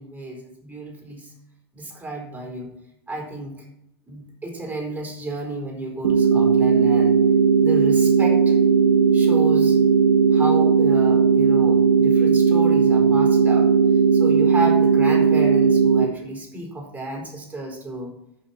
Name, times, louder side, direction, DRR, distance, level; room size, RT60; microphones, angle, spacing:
voice 1, 0.0-1.3 1.7-2.7 3.1-3.7 4.1-7.1 7.6-8.6 9.1-9.8 10.3-13.7 14.1-18.1, right 2 dB, 10° right, 0 dB, 4.4 m, -32 dB
sound 1, 6.0-16.1, right 5 dB, 80° right, 1.0 m, -17 dB
14.0 x 6.4 x 4.4 m, 0.81 s
hypercardioid pair, 90°, 13 cm